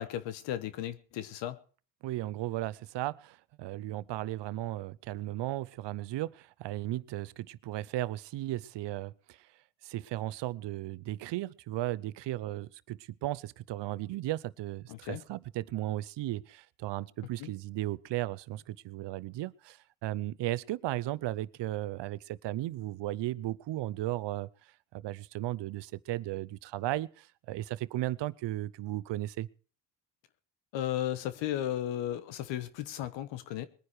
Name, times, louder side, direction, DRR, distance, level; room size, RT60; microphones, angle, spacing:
voice 1, 0.0-1.6 14.9-15.2 17.4-17.5 30.7-33.7, left 11 dB, 90° left, 1.2 m, -35 dB
voice 2, 2.0-9.5 9.8-24.5 24.9-29.5, right 15 dB, 75° right, 0.8 m, -35 dB
21.0 x 10.0 x 4.8 m
supercardioid pair, 60°, 43 cm